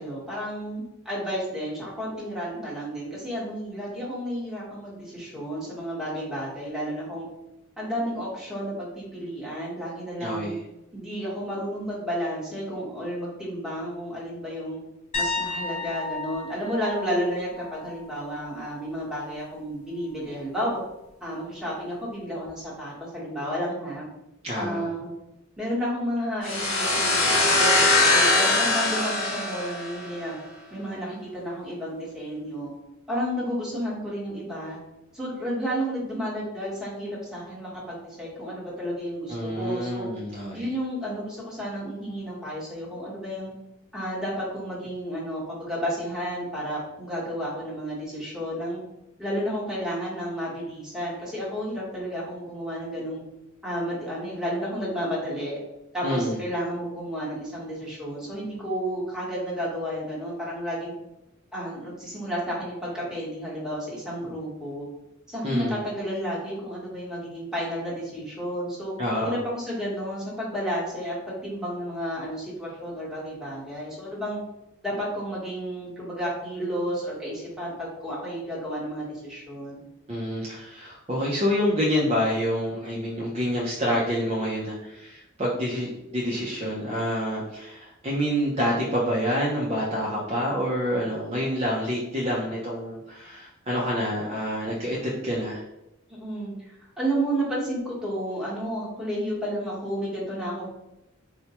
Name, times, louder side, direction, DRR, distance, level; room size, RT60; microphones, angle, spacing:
voice 1, 0.0-7.3 7.8-10.6 10.9-14.8 15.1-20.8 21.2-24.1 24.5-25.1 25.6-30.4 30.7-32.7 33.1-34.8 35.1-40.1 40.5-43.5 43.9-48.8 49.2-53.2 53.6-55.6 55.9-60.9 61.5-64.9 65.3-68.9 69.2-74.4 74.8-79.8 96.1-100.7, equal, 5° right, -7 dB, 1.2 m, -31 dB
voice 2, 10.2-10.6 24.4-24.8 39.3-40.6 56.0-56.4 65.4-65.8 69.0-69.4 80.1-95.6, equal, 30° right, -5 dB, 0.5 m, -27 dB
sound 1, 15.1-18.9 19.2-19.6 22.4-22.5, left 3 dB, 30° left, 0.8 m, -34 dB
sound 2, 26.5-30.2, left 2 dB, 65° left, 0.8 m, -22 dB
4.4 x 2.2 x 2.9 m, 0.90 s
head